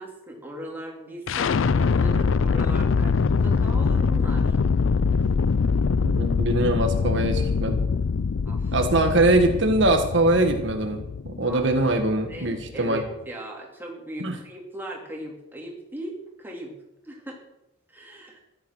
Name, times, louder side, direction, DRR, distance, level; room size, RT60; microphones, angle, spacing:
voice 1, 0.0-4.5 8.5-8.8 11.5-11.9 12.3-16.7 17.0-17.4 17.9-18.4, right 1 dB, 10° right, -1 dB, 3.4 m, -38 dB
sound 1, 1.3-13.1, left 5 dB, 70° left, 0.5 m, -24 dB
voice 2, 6.0-7.8 8.7-13.0 14.2-14.3, right 2 dB, 60° right, 5 dB, 1.6 m, -22 dB
14.5 x 12.0 x 6.3 m, 0.88 s
head